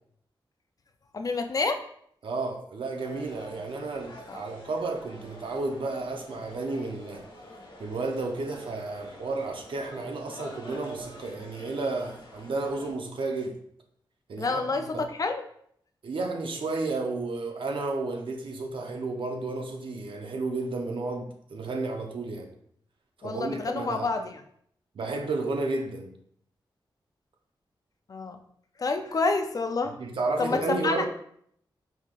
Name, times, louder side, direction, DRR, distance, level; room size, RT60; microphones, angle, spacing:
voice 1, 1.1-1.8 4.3-4.4 14.4-15.4 23.2-24.4 28.1-28.4 28.8-29.9 30.4-31.1, left 3 dB, 45° left, 0.4 m, -28 dB
voice 2, 2.2-7.3 7.8-13.6 14.3-15.0 16.0-22.5 23.2-24.1 24.9-26.1 30.0-31.1, right 3 dB, 80° right, 0.7 m, -32 dB
sound 1, 2.9-12.9, equal, 75° left, 1.2 m, -47 dB
5.6 x 3.5 x 2.4 m
wide cardioid pair, 115°, 9 cm